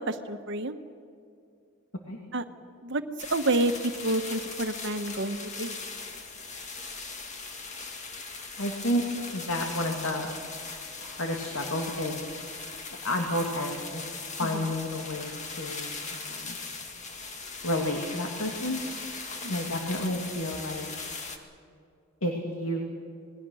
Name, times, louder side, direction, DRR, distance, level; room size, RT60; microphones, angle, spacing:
voice 1, 0.1-0.8 2.3-2.4 2.8-3.0 3.3-5.8 19.6-19.7, right 2 dB, 60° right, 8 dB, 1.2 m, -28 dB
sound 1, 3.2-21.4, left 4 dB, 35° left, 1.8 m, -39 dB
voice 2, 8.6-9.0 9.3-10.3 11.0-12.1 13.0-14.1 14.4-16.6 17.6-18.8 19.5-20.9 22.2-22.8, left 1 dB, 85° left, 1 dB, 2.5 m, -31 dB
27.5 x 20.0 x 6.4 m, 2.4 s
head